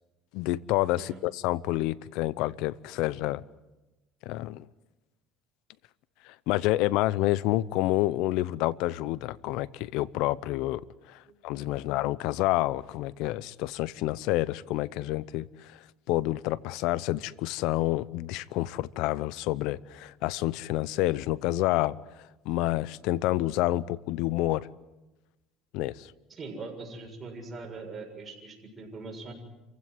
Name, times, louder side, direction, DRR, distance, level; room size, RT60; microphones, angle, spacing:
voice 1, 0.3-3.4 4.2-4.6 6.2-22.0 22.4-24.7 25.7-26.1, left 17 dB, 75° left, 0.8 m, -28 dB
voice 2, 26.3-29.3, right 3 dB, 30° right, 7.2 m, -42 dB
28.0 x 16.0 x 9.7 m
cardioid pair, 115°, 0 cm